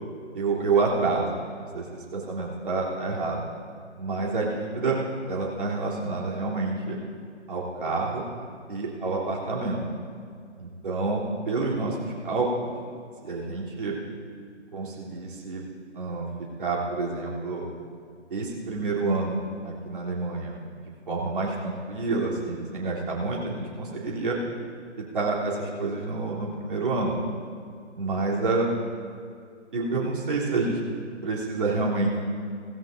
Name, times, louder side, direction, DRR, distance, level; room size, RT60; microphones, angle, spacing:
voice 1, 0.3-1.3 1.7-1.8 2.1-3.4 4.0-5.0 5.3-7.0 7.5-8.2 8.7-9.8 10.6-12.0 12.2-12.7 13.2-13.9 14.7-15.6 15.9-16.2 16.6-17.7 18.3-19.4 19.6-20.6 21.1-24.4 25.1-27.1 28.0-28.7 29.7-30.8 31.2-32.1, right 3 dB, 45° right, -4 dB, 3.3 m, -28 dB
18.0 x 16.0 x 2.6 m, 2.2 s
figure-of-eight pair, 145°, 35 cm